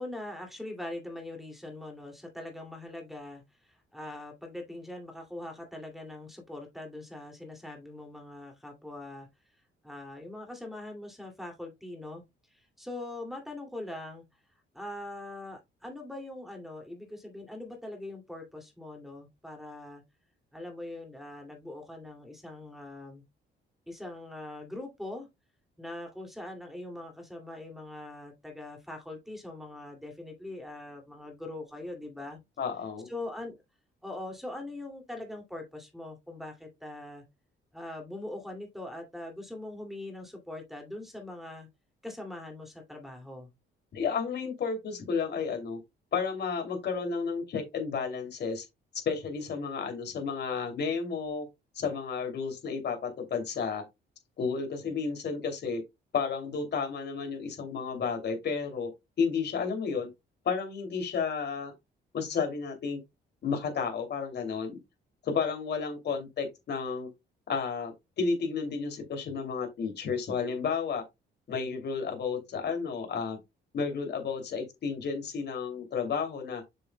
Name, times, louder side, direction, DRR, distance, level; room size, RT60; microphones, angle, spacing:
voice 1, 0.0-9.3 9.8-12.2 12.5-14.2 14.7-20.0 20.5-23.2 23.9-25.3 25.8-32.4 33.1-33.6 34.0-37.2 37.7-41.7 42.0-43.5, left 1 dB, ahead, 2.5 m, -42 dB
voice 2, 32.6-33.1 43.9-45.8 46.1-48.7 49.0-51.5 51.7-53.8 54.4-55.8 56.1-58.9 59.2-60.1 60.4-61.7 62.1-63.0 63.4-64.8 65.2-67.1 67.5-71.0 71.5-73.4 73.7-76.6, left 5 dB, 60° left, 2.8 m, -32 dB
6.9 x 6.8 x 2.2 m
cardioid pair, 90°, 20 cm